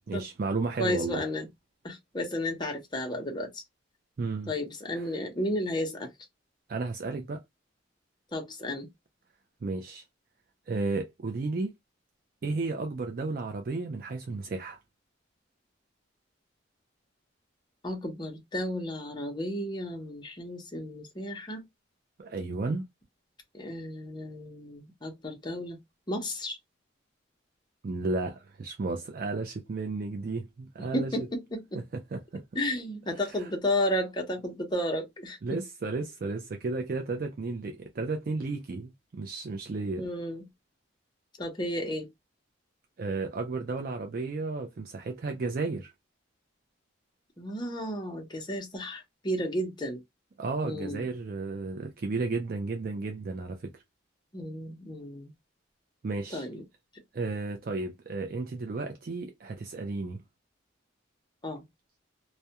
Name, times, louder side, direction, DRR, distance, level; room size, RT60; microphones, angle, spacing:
voice 1, 0.1-1.2 4.2-4.5 4.9-5.1 6.7-7.4 9.6-10.0 10.7-11.7 12.4-14.8 22.2-22.9 27.8-31.3 32.1-32.4 33.1-33.5 35.4-40.0 43.0-45.9 50.4-53.7 56.0-56.5 57.1-60.2, right 3 dB, 45° right, 0.4 m, -33 dB
voice 2, 0.8-1.5 1.8-3.6 4.5-6.1 8.3-8.9 17.8-21.6 23.5-25.8 26.1-26.6 30.9-31.8 32.5-35.4 40.0-40.5 41.4-42.1 47.4-50.0 50.6-51.1 54.3-55.3 56.3-56.6 61.4-61.6, left 1 dB, 20° left, 0.7 m, -33 dB
2.3 x 2.1 x 2.7 m
head